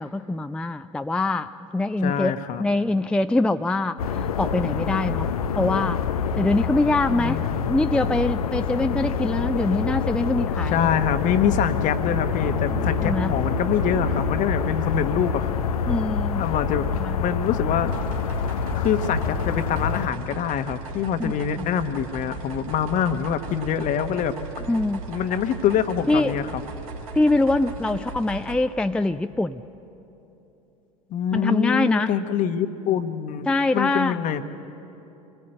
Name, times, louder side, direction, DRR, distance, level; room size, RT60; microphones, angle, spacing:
voice 1, 0.0-5.3 5.6-6.0 6.4-7.4 7.7-10.9 13.0-13.3 15.9-16.4 17.0-17.2 21.2-21.7 24.7-25.0 26.1-26.3 27.1-29.6 31.3-32.1 33.5-34.2, left 2 dB, 5° left, 9 dB, 0.4 m, -24 dB
voice 2, 2.0-2.6 7.1-7.6 10.7-15.6 16.4-16.9 17.2-17.9 18.7-24.3 25.1-26.6 31.1-33.5 33.7-34.4, left 8 dB, 45° left, 9 dB, 1.2 m, -25 dB
sound 1, 4.0-20.1, left 6 dB, 80° left, 0.7 m, -26 dB
Piano, 12.4-17.9, equal, 90° right, 4.0 m, -36 dB
sound 2, 17.8-28.6, right 4 dB, 70° right, 2.1 m, -37 dB
26.0 x 19.0 x 7.8 m, 2.9 s
hypercardioid pair, 80°, 18 cm